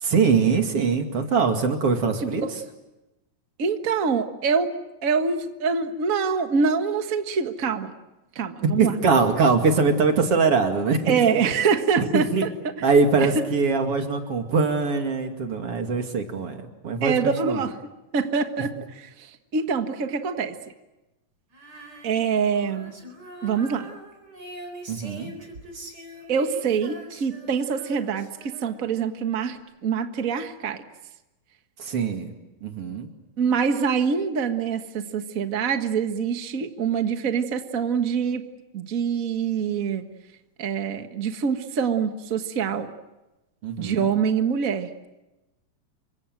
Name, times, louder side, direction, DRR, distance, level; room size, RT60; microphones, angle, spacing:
voice 1, 0.0-2.5 8.6-11.2 12.1-12.4 12.8-17.1 17.4-17.6 24.9-25.3 31.8-32.3 32.6-33.1 43.6-44.1, right 4 dB, 45° right, 5 dB, 3.1 m, -22 dB
voice 2, 2.2-2.5 3.6-4.7 5.0-7.9 8.3-8.9 11.1-12.9 13.2-13.4 17.0-17.8 18.1-20.6 22.0-23.0 23.4-23.9 26.3-30.8 33.4-38.4 38.7-40.0 40.6-42.9 43.8-44.9, right 6 dB, 65° right, 7 dB, 0.8 m, -25 dB
Female singing, 21.5-29.0, right 1 dB, 30° right, 4.6 m, -43 dB
28.5 x 25.0 x 7.7 m, 0.99 s
omnidirectional pair, 4.1 m